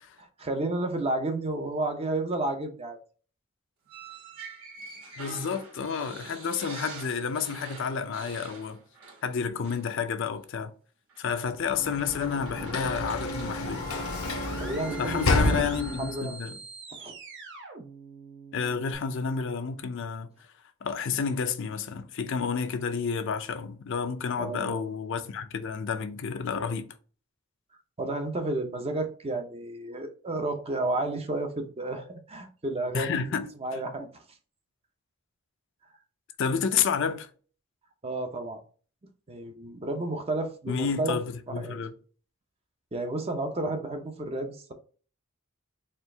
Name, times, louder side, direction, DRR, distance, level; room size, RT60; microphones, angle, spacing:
voice 1, 0.2-3.0 14.6-15.6 16.0-16.3 16.9-17.1 24.4-24.8 28.0-33.2 33.6-34.2 38.0-38.6 39.3-41.2 41.5-41.8 42.9-44.7, right 2 dB, 30° right, 0.6 m, -31 dB
sound 1, 3.9-9.4 9.6-9.9 11.1-11.2 11.8-13.6, right 4 dB, 75° right, 1.9 m, -45 dB
voice 2, 5.2-8.8 9.2-10.7 11.2-13.8 15.0-16.6 18.5-20.3 20.8-26.9 32.9-33.8 36.4-37.3 40.7-41.9, left 6 dB, 60° left, 0.5 m, -30 dB
Sliding door / Slam, 11.6-16.3, left 2 dB, 85° left, 0.8 m, -30 dB
sound 2, 11.8-18.9, right 5 dB, 55° right, 0.9 m, -44 dB
4.4 x 2.4 x 3.3 m
head